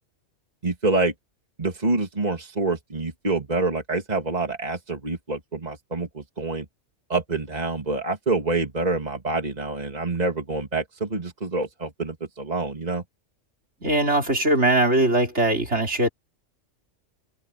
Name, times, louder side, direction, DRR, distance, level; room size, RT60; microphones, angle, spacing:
voice 1, 0.6-1.1 1.6-6.7 7.1-13.0, right 3 dB, 35° right, 2.7 m, -26 dB
voice 2, 13.8-16.1, right 2 dB, 65° right, 5.1 m, -21 dB
open air
omnidirectional pair, 1.3 m